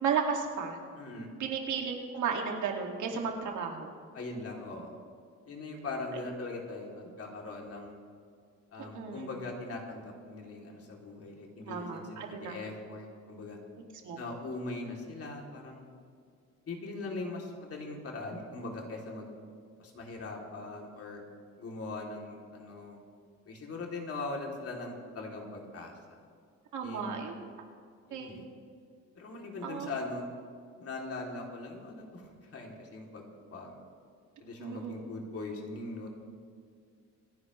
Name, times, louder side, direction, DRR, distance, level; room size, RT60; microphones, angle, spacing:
voice 1, 0.0-0.8 1.4-3.9 8.8-9.3 11.7-12.5 14.0-14.2 26.7-27.4 28.1-28.4 29.6-29.9 34.6-35.0, right 6 dB, 80° right, 2 dB, 2.3 m, -34 dB
voice 2, 0.9-1.3 4.1-4.9 5.5-8.0 8.7-13.6 14.2-15.8 16.7-19.3 19.8-21.2 21.6-23.0 23.4-26.2 26.8-27.2 28.1-28.5 29.1-30.3 30.8-33.7 34.4-36.1, left 2 dB, 50° left, 0 dB, 3.0 m, -41 dB
26.5 x 10.5 x 3.2 m, 2.2 s
cardioid pair, 90°, 30 cm